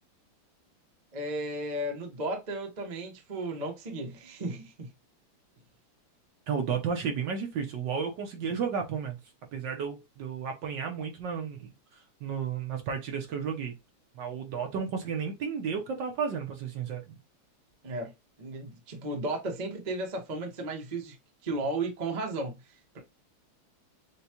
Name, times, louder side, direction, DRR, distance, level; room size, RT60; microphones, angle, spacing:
voice 1, 1.1-4.9 17.8-18.1 18.4-21.2 21.4-23.0, right 2 dB, 35° right, 0.7 m, -34 dB
voice 2, 6.5-9.2 9.5-13.7 14.1-17.2, right 6 dB, 65° right, 1.3 m, -33 dB
6.8 x 2.3 x 2.9 m
omnidirectional pair, 2.4 m